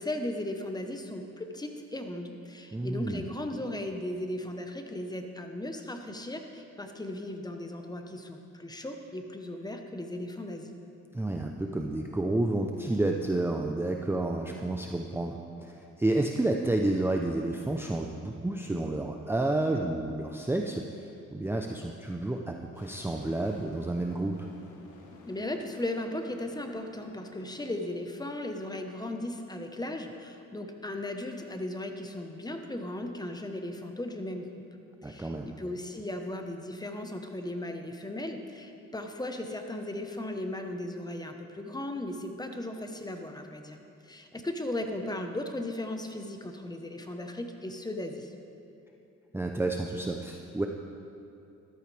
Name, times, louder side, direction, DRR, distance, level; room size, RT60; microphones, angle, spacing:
voice 1, 0.0-10.7 25.3-34.5 35.0-43.8 44.0-48.3, left 1 dB, 15° left, 5 dB, 1.0 m, -37 dB
voice 2, 2.7-3.2 11.1-20.9 21.3-24.5 35.0-35.5 49.3-50.7, right 2 dB, 10° right, 2 dB, 0.6 m, -30 dB
sound 1, 22.7-27.8, left 3 dB, 85° left, 1.6 m, -52 dB
13.5 x 12.5 x 3.4 m, 2.7 s
cardioid pair, 90°, 30 cm